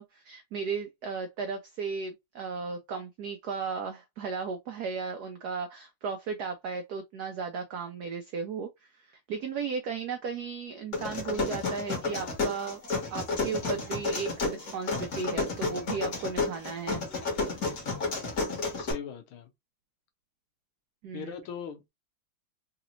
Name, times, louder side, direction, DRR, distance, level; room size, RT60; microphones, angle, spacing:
voice 1, 0.0-9.0 9.3-12.8 13.1-17.0 21.0-21.3, right 5 dB, 85° right, 0.8 m, -35 dB
sound 1, 10.9-18.9, left 3 dB, 45° left, 1.8 m, -31 dB
voice 2, 18.8-19.5 21.1-21.9, left 7 dB, 85° left, 1.7 m, -40 dB
4.0 x 2.9 x 2.5 m
omnidirectional pair, 2.3 m